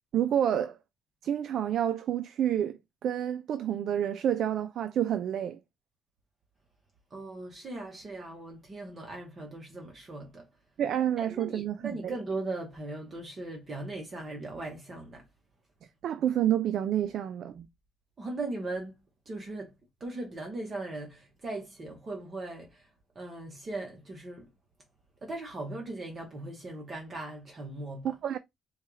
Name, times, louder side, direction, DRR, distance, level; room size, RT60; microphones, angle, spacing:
voice 1, 0.1-0.8 1.2-5.6 10.8-12.1 16.0-17.7 28.0-28.4, right 10 dB, 65° right, 0.4 m, -29 dB
voice 2, 7.1-10.5 11.2-15.3 18.2-19.0 19.2-19.7 20.0-22.9 23.1-24.5 25.2-28.2, right 2 dB, 35° right, 1.1 m, -39 dB
4.4 x 2.3 x 3.0 m
cardioid pair, 115°, 0 cm